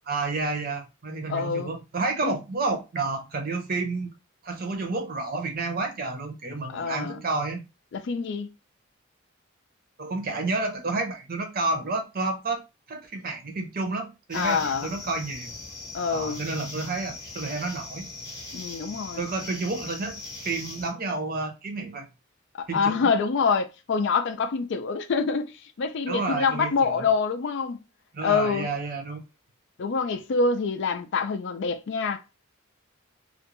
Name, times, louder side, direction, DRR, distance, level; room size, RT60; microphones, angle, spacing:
voice 1, 0.1-4.1 4.4-7.7 10.0-12.6 12.9-15.5 16.1-18.1 19.2-22.1 22.7-23.1 26.1-27.1 28.1-29.2, right 3 dB, 45° right, 0.7 m, -30 dB
voice 2, 1.3-1.7 2.2-2.3 6.7-7.2 7.9-8.5 14.3-14.9 15.9-16.4 18.5-19.2 22.6-27.8 28.2-28.7 29.8-32.4, left 5 dB, 60° left, 0.4 m, -26 dB
sound 1, 14.3-20.9, left 3 dB, 15° left, 0.8 m, -40 dB
2.4 x 2.1 x 2.9 m
head